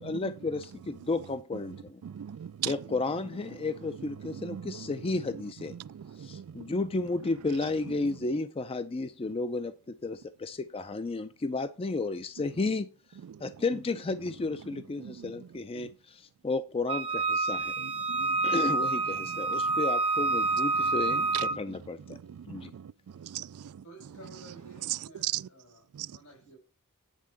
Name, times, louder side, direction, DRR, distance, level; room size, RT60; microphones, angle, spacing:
voice 1, 0.0-2.0 2.7-5.7 6.2-12.9 13.4-17.7 18.4-22.2 22.5-22.7, left 3 dB, 25° left, 0.4 m, -33 dB
voice 2, 2.0-2.7 4.0-4.9 5.7-6.7 13.2-13.4 14.7-15.5 15.8-15.9 17.8-18.5 19.2-19.8 20.8-21.8 22.1-23.8 24.9-25.5 25.9-26.1, right 12 dB, 80° right, 0.3 m, -39 dB
Wind instrument woodwind instrument, 16.9-21.6, right 3 dB, 25° right, 0.6 m, -28 dB
voice 3, 23.8-26.6, right 2 dB, 80° left, 5.8 m, -52 dB
9.7 x 3.7 x 7.0 m
head